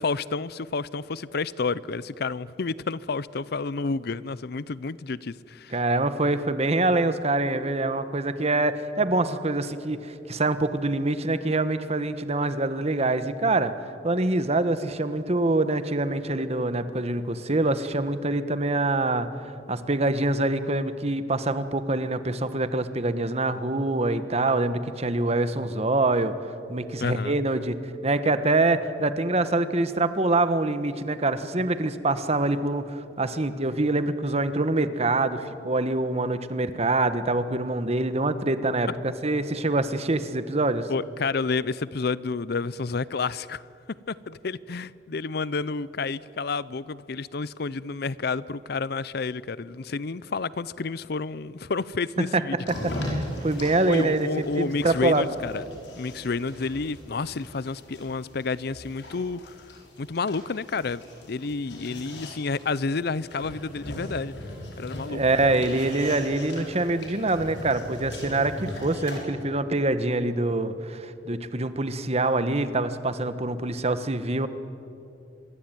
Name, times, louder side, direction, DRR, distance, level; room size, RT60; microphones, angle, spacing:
voice 1, 0.0-5.7 27.0-27.4 40.9-43.6 44.1-52.6 53.9-55.6 55.9-59.6 60.0-61.0 61.3-64.3 64.8-65.2, left 4 dB, 60° left, 0.6 m, -30 dB
voice 2, 5.7-13.7 14.0-19.3 19.7-27.8 28.0-40.9 52.3-52.4 52.8-54.3 54.6-55.3 65.1-74.5, right 2 dB, 35° right, 1.3 m, -25 dB
sound 1, 52.6-69.2, left 1 dB, 90° left, 6.2 m, -38 dB
25.5 x 22.0 x 9.3 m
head